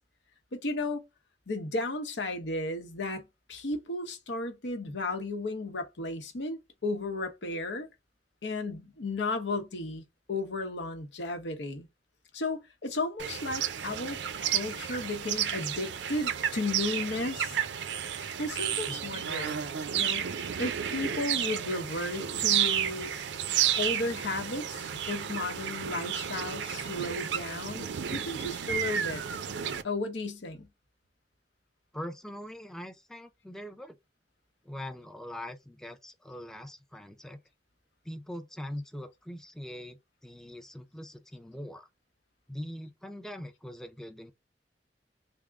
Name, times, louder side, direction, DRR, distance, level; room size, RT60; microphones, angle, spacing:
voice 1, 0.5-1.0 1.5-3.2 3.5-7.9 8.4-10.0 10.3-11.9 12.3-17.6 18.2-19.6 19.9-23.1 23.8-29.2 29.8-30.7, left 2 dB, 85° left, 0.8 m, -34 dB
sound 1, 13.2-29.8, right 9 dB, 85° right, 0.4 m, -32 dB
voice 2, 18.9-19.2 31.9-34.0 34.6-37.4 38.0-41.9 42.5-44.3, equal, 5° left, 0.4 m, -42 dB
3.5 x 2.0 x 3.5 m
head